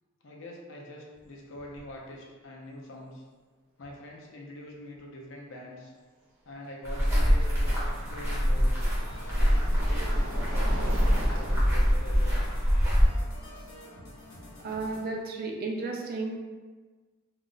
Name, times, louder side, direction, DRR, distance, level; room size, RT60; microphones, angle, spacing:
voice 1, 0.2-3.2 3.8-5.9 6.4-8.7 9.4-12.4, left 1 dB, 60° left, -1 dB, 0.6 m, -44 dB
sound 1, 1.1-1.3 1.6-2.0 3.8-3.9 6.9-15.0, right 1 dB, 75° right, 0.6 m, -43 dB
sound 2, 6.8-13.0, equal, 10° right, 0.7 m, -24 dB
sound 3, 7.0-15.1, equal, 85° left, 0.9 m, -49 dB
voice 2, 14.6-16.4, right 3 dB, 45° right, 1 dB, 0.4 m, -33 dB
2.4 x 2.1 x 3.7 m, 1.4 s
head